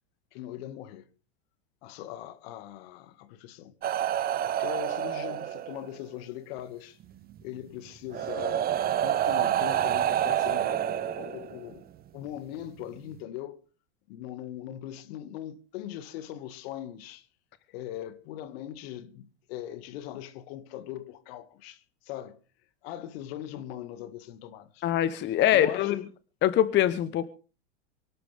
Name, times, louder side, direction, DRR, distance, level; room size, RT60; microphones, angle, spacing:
voice 1, 0.3-1.0 1.8-3.7 4.4-7.0 7.4-8.7 9.0-11.8 12.1-13.6 14.1-17.3 17.7-22.4 22.8-24.8 25.5-26.0, left 12 dB, 60° left, 2.1 m, -40 dB
sound 1, 3.8-6.0 7.3-7.4 8.1-11.7 12.8-13.0, right 11 dB, 25° right, 1.0 m, -28 dB
voice 2, 24.8-26.0 26.4-27.3, left 11 dB, 35° left, 1.0 m, -23 dB
24.0 x 12.0 x 3.5 m
hypercardioid pair, 115°, 34 cm